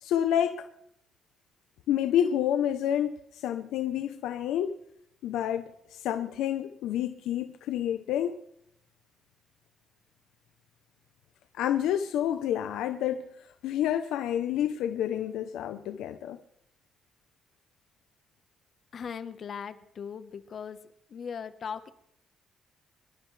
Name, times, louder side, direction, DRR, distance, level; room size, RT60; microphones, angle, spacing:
voice 1, 0.0-0.7 1.9-4.7 5.2-8.4 11.5-13.3 13.6-16.4, left 10 dB, 90° left, 0.8 m, -29 dB
voice 2, 18.9-20.8 21.1-21.9, left 7 dB, 55° left, 1.2 m, -39 dB
26.0 x 12.5 x 3.4 m
cardioid pair, 90°, 0 cm